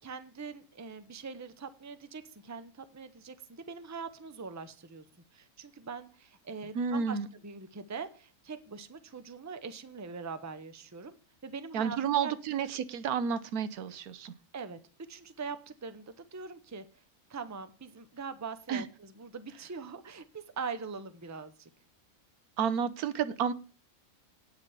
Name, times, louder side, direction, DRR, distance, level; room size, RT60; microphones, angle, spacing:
voice 1, 0.0-5.0 5.3-7.2 7.4-11.2 11.4-12.3 14.5-14.8 15.1-16.9 17.3-21.7, right 5 dB, 15° right, 11 dB, 0.6 m, -42 dB
voice 2, 6.7-7.3 11.7-14.3 18.7-18.8 22.6-23.5, right 7 dB, 85° right, 13 dB, 1.3 m, -31 dB
9.2 x 5.5 x 8.0 m, 0.36 s
omnidirectional pair, 1.5 m